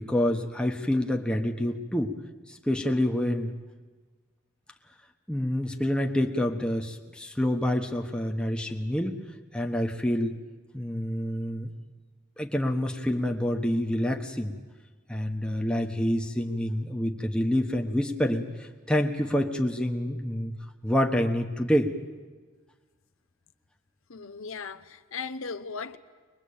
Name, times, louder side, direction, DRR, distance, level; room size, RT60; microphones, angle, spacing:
voice 1, 0.0-2.1 2.5-3.5 5.3-9.2 9.5-10.3 10.7-11.7 12.4-14.5 15.1-20.5 20.8-21.9, left 1 dB, 5° left, 1.2 m, -27 dB
voice 2, 24.1-26.0, left 5 dB, 75° left, 0.9 m, -37 dB
23.0 x 21.0 x 8.6 m
head